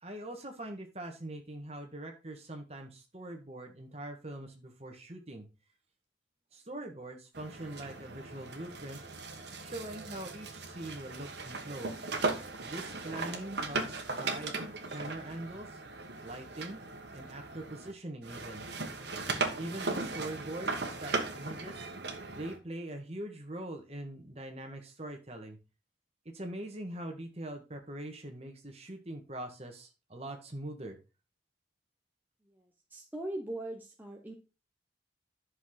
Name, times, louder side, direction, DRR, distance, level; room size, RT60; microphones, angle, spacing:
voice 1, 0.0-5.5 6.5-9.0 9.6-11.9 12.6-14.6 14.9-15.8 16.2-16.8 17.1-18.6 19.6-21.9 22.2-25.6 26.3-31.0, right 1 dB, 35° right, 4 dB, 1.8 m, -42 dB
sound 1, 7.3-17.9 18.2-22.6, right 3 dB, 60° right, 1.6 m, -38 dB
voice 2, 32.4-34.3, right 1 dB, 10° right, 1 dB, 1.0 m, -41 dB
11.0 x 6.5 x 4.0 m, 0.31 s
head